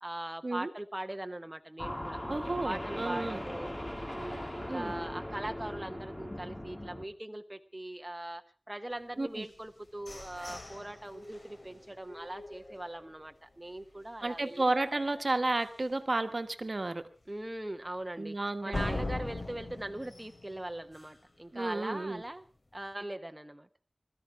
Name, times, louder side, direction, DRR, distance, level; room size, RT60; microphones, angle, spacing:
voice 1, 0.0-2.2 2.6-3.7 4.1-15.2 17.3-22.4 22.7-23.7, right 1 dB, 25° right, 7 dB, 1.0 m, -41 dB
sound 1, 1.8-7.1, left 1 dB, 20° left, 2.0 m, -39 dB
voice 2, 2.3-3.4 4.7-4.9 9.2-9.4 14.2-17.0 18.2-19.1 21.5-22.2, right 2 dB, 60° right, 9 dB, 1.3 m, -32 dB
sound 2, 9.4-13.3 13.8-13.9 14.3-14.7 15.0-15.1 15.6-15.7 18.7-21.4, left 2 dB, 60° left, 2.8 m, -41 dB
21.5 x 13.5 x 4.7 m, 0.37 s
wide cardioid pair, 50°, 0 cm